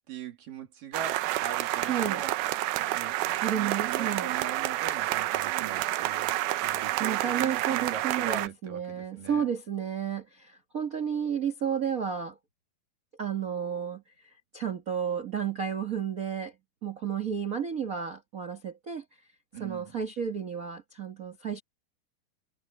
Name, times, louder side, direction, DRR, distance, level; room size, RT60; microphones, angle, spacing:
voice 1, 0.0-2.3 2.8-3.2 3.5-9.4 19.5-20.0, right 8 dB, 65° right, 4.5 m, -41 dB
sound 1, 0.9-8.5, right 15 dB, 85° right, 2.7 m, -29 dB
voice 2, 1.8-2.2 3.4-4.3 7.0-12.4 13.2-14.0 14.5-16.5 16.8-19.0 19.6-21.6, right 8 dB, 50° right, 1.0 m, -32 dB
omnidirectional pair, 4.2 m